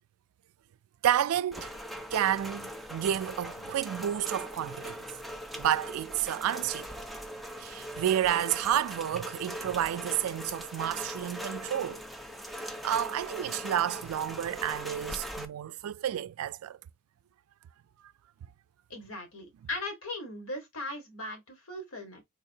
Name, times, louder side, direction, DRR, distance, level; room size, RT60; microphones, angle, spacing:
voice 1, 1.0-1.7 2.1-5.0 5.6-7.0 7.6-12.0 12.6-16.8, right 11 dB, 85° right, 0.3 m, -30 dB
Rain, 1.5-15.5, equal, ahead, 0.3 m, -40 dB
voice 2, 18.9-22.2, left 2 dB, 80° left, 1.5 m, -38 dB
3.9 x 2.7 x 2.7 m
head